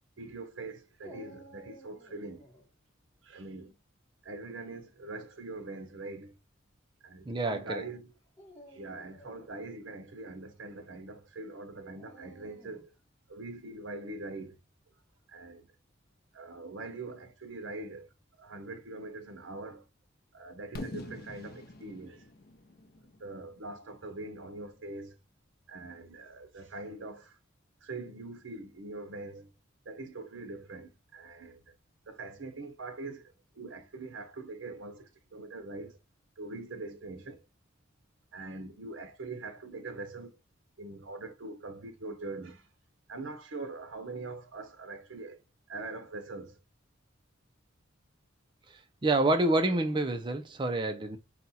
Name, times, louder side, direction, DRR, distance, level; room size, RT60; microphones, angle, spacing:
voice 1, 0.2-2.5 3.2-3.8 4.2-6.4 7.0-8.1 8.7-12.9 13.3-14.6 15.3-15.7 16.3-19.9 20.3-22.3 23.2-25.2 25.7-27.4 27.8-29.5 29.9-31.8 32.1-36.0 36.4-37.4 38.3-40.4 40.8-42.7 43.1-45.4 45.7-46.6, right 2 dB, 70° right, 0.7 m, -43 dB
Dog, 1.0-2.7 4.7-5.2 6.0-6.1 8.3-9.5 12.0-13.0, right 1 dB, 10° left, 1.1 m, -53 dB
voice 2, 7.3-7.8 48.7-51.2, right 2 dB, 25° right, 0.4 m, -28 dB
Fireworks, 20.7-24.6, left 1 dB, 50° left, 0.6 m, -45 dB
4.2 x 2.3 x 4.0 m
head